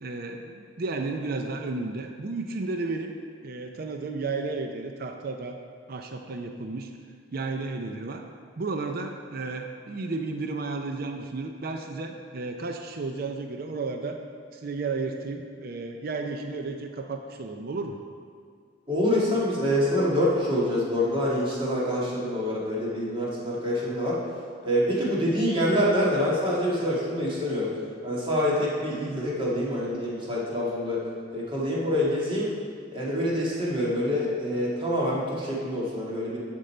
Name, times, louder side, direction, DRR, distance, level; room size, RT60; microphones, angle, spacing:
voice 1, 0.0-3.1 3.4-5.6 5.9-6.9 7.3-8.2 8.6-14.2 14.5-18.0, right 3 dB, 55° right, 4 dB, 0.5 m, -33 dB
voice 2, 18.9-24.2 24.6-27.7 28.0-31.0 31.3-32.5 32.9-36.4, equal, 30° right, -6 dB, 1.9 m, -26 dB
11.5 x 5.2 x 4.4 m, 2.2 s
head